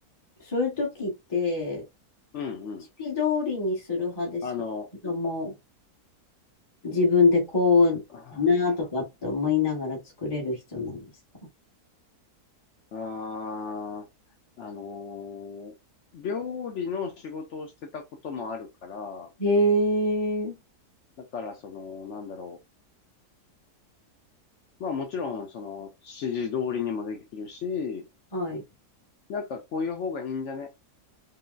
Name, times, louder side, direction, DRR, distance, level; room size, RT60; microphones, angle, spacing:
voice 1, 0.4-1.8 3.0-4.4 5.0-5.5 6.8-8.0 8.3-11.0 19.4-20.6 28.3-28.6, left 3 dB, 20° left, 0.8 m, -25 dB
voice 2, 2.3-2.9 4.4-4.9 8.1-8.6 12.9-14.1 14.6-15.7 16.1-19.3 21.2-22.6 24.8-28.0 29.3-30.7, left 5 dB, 65° left, 0.7 m, -34 dB
3.7 x 2.0 x 2.3 m
omnidirectional pair, 1.7 m